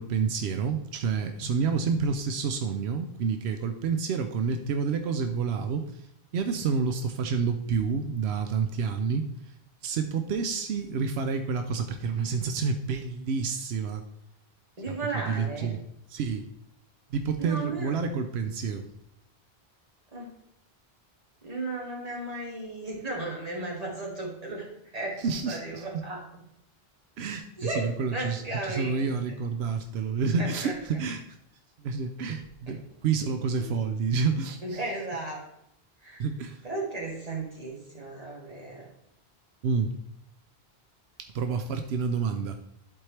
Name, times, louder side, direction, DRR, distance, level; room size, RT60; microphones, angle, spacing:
voice 1, 0.0-6.1 6.3-9.5 9.8-14.0 14.9-15.0 15.3-15.8 16.1-16.5 17.1-18.9 25.2-26.0 27.2-31.4 31.8-34.8 36.2-36.7 39.6-39.9 41.2-42.6, right 5 dB, 85° right, 7 dB, 0.9 m, -29 dB
voice 2, 14.8-15.7 17.4-17.9 20.1-20.3 21.4-26.2 27.6-27.9 28.1-29.1 30.4-30.7 33.6-33.7 34.6-35.4 36.0-36.2 36.6-38.9, right 2 dB, 40° right, -2 dB, 1.9 m, -35 dB
11.0 x 4.5 x 3.2 m, 0.78 s
omnidirectional pair, 1.1 m